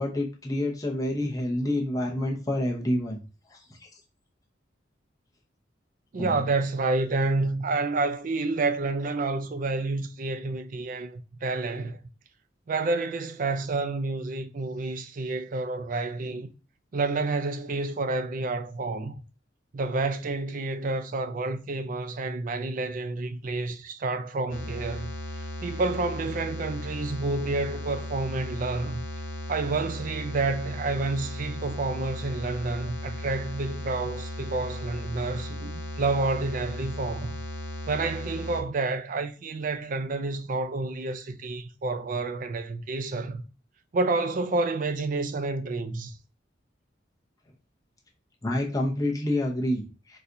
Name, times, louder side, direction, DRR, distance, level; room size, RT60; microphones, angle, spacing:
voice 1, 0.0-3.2 3.5-3.9 6.1-6.4 48.4-50.2, left 1 dB, 20° left, 0.7 m, -28 dB
voice 2, 6.1-12.0 12.7-16.5 16.9-19.2 19.7-25.1 25.6-29.0 29.5-37.4 37.9-43.4 43.9-46.1, right 3 dB, 45° right, 0.4 m, -29 dB
sound 1, 24.5-38.6, left 1 dB, 85° left, 0.6 m, -36 dB
4.1 x 2.3 x 2.5 m
head